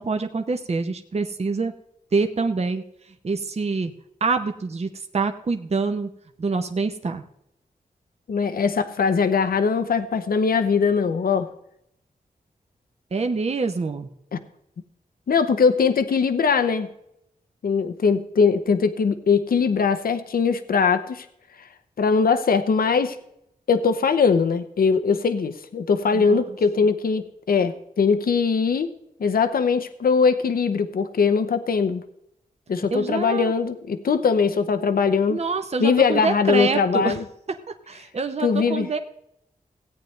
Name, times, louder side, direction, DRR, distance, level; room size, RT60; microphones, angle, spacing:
voice 1, 0.0-1.7 2.1-2.8 3.2-3.9 4.2-6.1 6.4-7.2 13.1-14.1 26.1-26.4 32.9-33.5 35.3-37.2 37.7-39.0, right 4 dB, 45° right, 6 dB, 0.9 m, -26 dB
voice 2, 8.3-11.5 14.3-14.4 15.3-16.9 17.6-21.3 22.0-23.2 23.7-28.9 29.2-32.0 32.7-35.4 35.8-37.2 38.4-38.9, left 5 dB, 85° left, 9 dB, 0.8 m, -21 dB
17.0 x 9.3 x 3.2 m, 0.77 s
wide cardioid pair, 100°, 15 cm